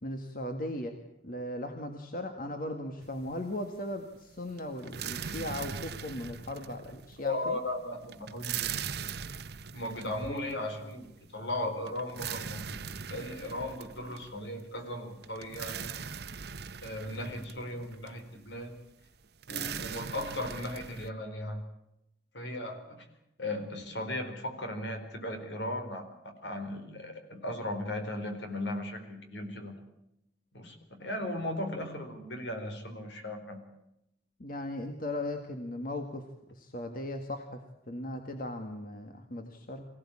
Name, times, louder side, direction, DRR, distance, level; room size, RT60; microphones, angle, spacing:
voice 1, 0.0-7.6 34.4-36.2 36.5-37.6 37.9-39.9, left 1 dB, 50° left, 5 dB, 1.9 m, -38 dB
sound 1, 3.0-3.6 3.9-21.1, right 7 dB, 60° right, 0.9 m, -40 dB
voice 2, 7.2-8.8 9.7-11.1 11.3-12.8 13.1-15.9 16.8-18.7 19.5-21.6 22.3-23.1 23.4-29.8 30.5-33.6, left 1 dB, 75° left, 6 dB, 4.4 m, -37 dB
24.5 x 17.0 x 8.7 m, 0.83 s
head